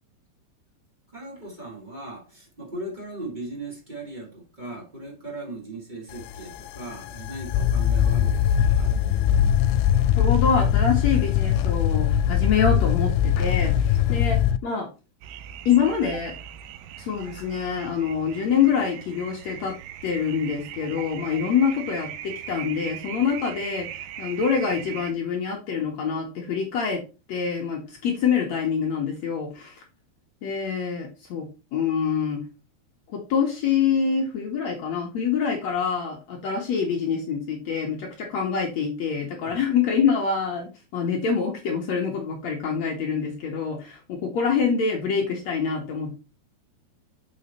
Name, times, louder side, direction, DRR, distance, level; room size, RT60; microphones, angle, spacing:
voice 1, 1.1-9.0 39.4-39.8, right 2 dB, 15° right, 2.1 m, -38 dB
sound 1, 6.1-14.6, left 9 dB, 90° left, 2.5 m, -21 dB
voice 2, 10.2-14.9 15.7-16.3 17.0-19.8 20.0-27.0 27.3-29.8 30.4-32.4 33.1-46.1, left 6 dB, 60° left, 2.0 m, -25 dB
sound 2, 15.2-25.1, right 10 dB, 80° right, 2.1 m, -39 dB
7.2 x 5.6 x 4.1 m
omnidirectional pair, 4.5 m